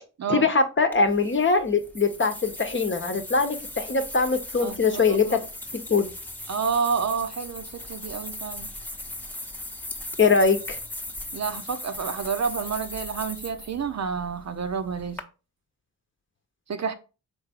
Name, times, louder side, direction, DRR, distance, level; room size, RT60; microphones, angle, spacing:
voice 1, 0.3-5.4 5.9-6.1 10.2-10.8, left 4 dB, 35° left, 0.9 m, -22 dB
sound 1, 0.9-15.2, left 1 dB, 5° left, 0.9 m, -38 dB
voice 2, 4.6-5.0 5.3-5.4 6.5-8.7 11.3-15.2 16.7-16.9, right 6 dB, 50° right, 0.6 m, -29 dB
4.3 x 3.4 x 3.5 m
cardioid pair, 50°, 34 cm